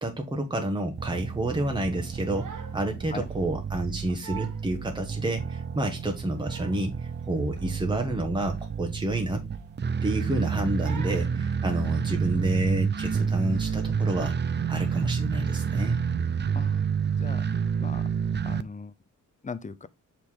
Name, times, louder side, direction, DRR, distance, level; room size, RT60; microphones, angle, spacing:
voice 1, 0.0-9.4 10.0-14.4 14.7-16.0, right 1 dB, 15° right, 1.3 m, -29 dB
sound 1, 1.0-18.6, right 6 dB, 35° right, 0.5 m, -29 dB
Crying sobbing, 2.0-2.9 3.2-3.4 3.9-4.0 4.2-4.7 5.2-5.3 6.1-6.9 7.2-7.4 7.8-7.9 8.3-8.4 9.2-9.8 10.2-10.4 10.8-11.3, right 7 dB, 70° right, 1.4 m, -44 dB
voice 2, 18.4-18.9 19.4-19.9, left 4 dB, 25° left, 0.6 m, -38 dB
6.5 x 4.9 x 3.7 m
wide cardioid pair, 110°, 32 cm